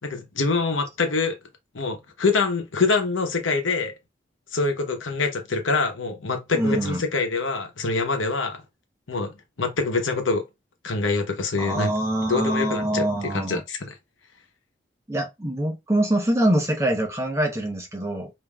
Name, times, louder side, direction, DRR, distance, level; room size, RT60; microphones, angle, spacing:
voice 1, 0.0-1.4 1.7-4.0 4.5-8.6 9.1-10.4 10.8-11.9 12.3-13.1 13.3-13.9, left 4 dB, 90° left, 0.9 m, -25 dB
voice 2, 6.5-7.0 11.6-13.6 15.1-18.3, right 1 dB, 15° right, 0.9 m, -24 dB
5.4 x 2.7 x 2.3 m
head